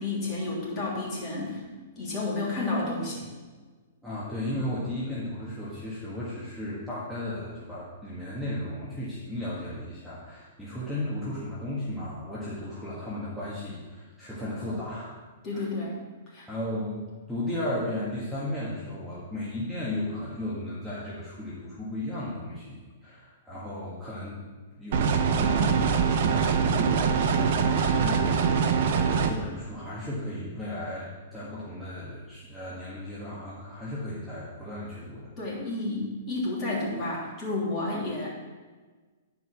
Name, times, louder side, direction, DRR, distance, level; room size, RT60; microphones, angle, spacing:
voice 1, 0.0-1.6 2.0-3.3 15.4-15.9 16.3-16.5 35.4-38.3, left 2 dB, 25° left, -5 dB, 3.2 m, -31 dB
voice 2, 4.0-15.1 15.5-15.7 16.5-17.0 17.3-24.4 24.8-35.3, left 1 dB, ahead, -10 dB, 1.7 m, -35 dB
sound 1, 24.9-29.3, right 6 dB, 55° right, 0.9 m, -23 dB
10.5 x 4.8 x 6.0 m, 1.4 s
hypercardioid pair, 145°, 0 cm